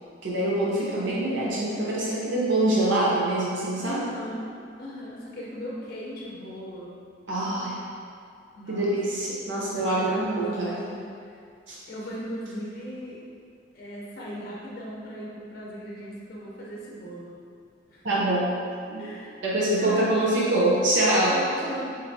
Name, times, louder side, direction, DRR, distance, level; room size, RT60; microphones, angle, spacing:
voice 1, 0.2-4.0 7.3-7.8 8.7-10.7 11.7-11.8 18.0-18.6 18.9-19.1 19.4-21.4, right 1 dB, 75° right, -6 dB, 0.7 m, -24 dB
voice 2, 3.8-4.5 4.8-6.9 8.5-8.9 9.7-11.4 11.9-13.2 13.7-17.3 17.9-18.0 19.0-19.4 19.8-20.4 21.2-21.8, equal, 50° left, -5 dB, 0.6 m, -37 dB
4.4 x 2.6 x 2.6 m, 2.4 s
head